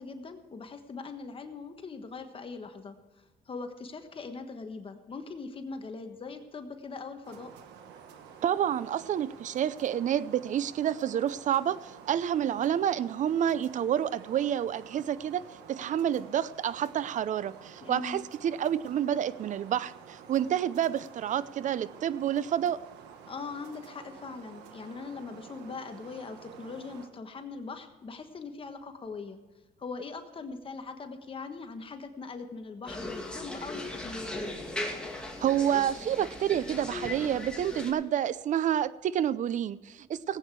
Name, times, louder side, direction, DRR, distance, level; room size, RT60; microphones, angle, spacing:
voice 1, 0.0-7.5 17.8-18.2 23.3-29.4 29.8-34.5, left 4 dB, 30° left, 6 dB, 1.3 m, -41 dB
sound 1, 7.2-27.1, right 7 dB, 90° right, 1.4 m, -50 dB
voice 2, 8.4-15.4 15.7-22.8 35.4-40.4, right 10 dB, 45° right, 18 dB, 0.6 m, -29 dB
sound 2, 32.9-37.9, left 1 dB, 5° left, 2.3 m, -38 dB
18.0 x 8.7 x 4.7 m, 1.2 s
cardioid pair, 110°, 17 cm